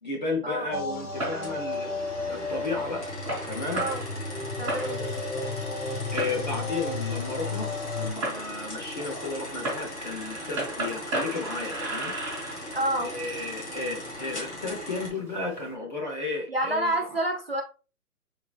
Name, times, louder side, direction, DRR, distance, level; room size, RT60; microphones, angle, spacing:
voice 1, 0.0-3.1 3.4-3.9 4.9-5.2 6.1-12.1 12.5-12.7 13.0-17.2, left 3 dB, 30° left, 0 dB, 0.8 m, -34 dB
sound 1, 0.7-8.1, left 3 dB, 70° left, 1.1 m, -33 dB
Fireworks, 0.9-15.7, right 1 dB, 5° right, 0.9 m, -38 dB
sound 2, 1.4-15.1, left 1 dB, 50° left, 1.6 m, -39 dB
voice 2, 4.6-5.0 12.7-13.1 16.5-17.6, right 1 dB, 40° right, 2 dB, 0.5 m, -28 dB
3.8 x 3.6 x 2.3 m, 0.33 s
hypercardioid pair, 165°, 46 cm